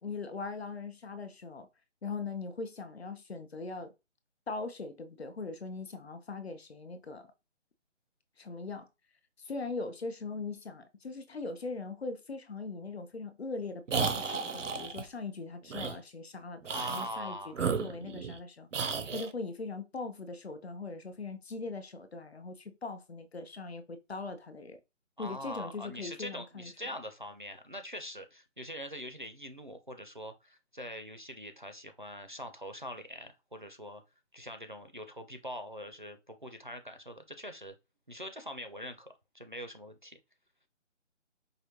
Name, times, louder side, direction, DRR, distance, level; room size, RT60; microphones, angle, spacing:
voice 1, 0.0-1.7 2.0-3.9 4.5-7.3 8.4-8.9 9.4-24.8 25.2-26.7, left 3 dB, 60° left, 0.7 m, -40 dB
sound 1, 13.9-15.0 15.7-16.0 16.6-17.1 17.5-18.4 18.7-19.3, right 5 dB, 85° right, 0.7 m, -33 dB
voice 2, 16.7-17.6 25.2-34.0 34.3-37.7 38.1-39.1 39.3-40.2, equal, 45° right, 0.4 m, -43 dB
4.9 x 2.5 x 2.9 m
hypercardioid pair, 180°, 37 cm